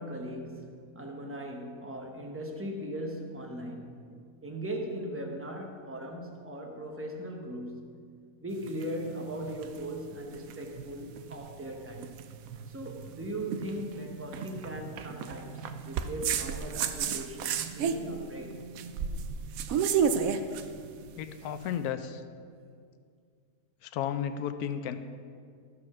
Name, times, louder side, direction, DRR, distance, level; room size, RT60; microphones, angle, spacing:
voice 1, 0.0-4.0 4.4-7.9 8.4-12.2 12.7-18.6, right 1 dB, 10° right, 2 dB, 0.7 m, -39 dB
sound 1, 8.5-21.7, right 7 dB, 70° right, 1.0 m, -33 dB
voice 2, 21.2-22.2 23.8-25.0, left 9 dB, 80° left, 9 dB, 1.1 m, -33 dB
13.5 x 4.8 x 6.1 m, 2.2 s
omnidirectional pair, 1.6 m